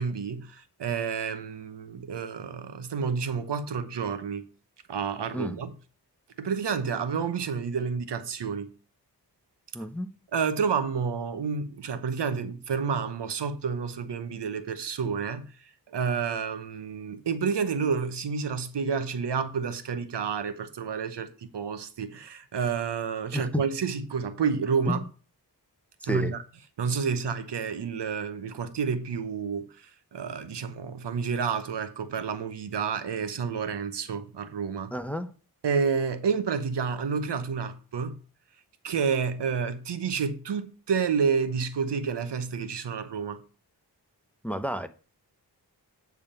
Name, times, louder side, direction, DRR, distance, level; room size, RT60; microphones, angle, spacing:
voice 1, 0.0-4.4 4.9-5.7 6.4-8.7 10.3-15.5 15.9-25.0 26.1-26.4 26.8-34.9 35.6-38.2 38.8-43.4, right 6 dB, 80° right, 0.9 m, -29 dB
voice 2, 9.7-10.1 23.3-23.6 24.9-25.0 26.0-26.3 34.9-35.3 44.4-44.9, equal, 5° left, 0.7 m, -30 dB
8.8 x 3.6 x 6.7 m
cardioid pair, 60°, 41 cm